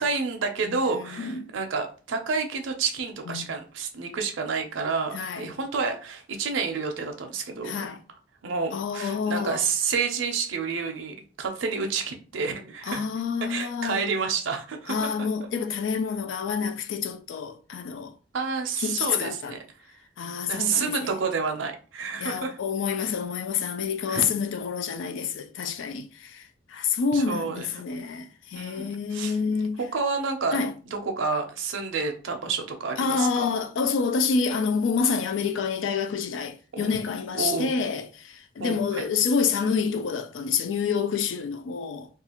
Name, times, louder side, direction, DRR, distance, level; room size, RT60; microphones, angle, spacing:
voice 1, 0.0-7.9 8.4-13.0 13.5-15.0 18.3-19.6 20.5-22.6 24.1-24.3 27.1-27.8 28.5-29.4 29.8-30.6 30.9-33.4 36.7-36.9 37.4-37.7 38.6-39.1, right 5 dB, 75° right, 0.5 m, -29 dB
voice 2, 0.7-1.5 3.3-3.5 5.1-5.5 7.6-8.0 8.7-9.6 12.8-14.0 14.9-18.1 18.8-19.6 20.2-21.1 22.2-29.8 30.5-30.7 33.0-42.1, left 5 dB, 70° left, 0.3 m, -28 dB
2.4 x 2.4 x 2.8 m
head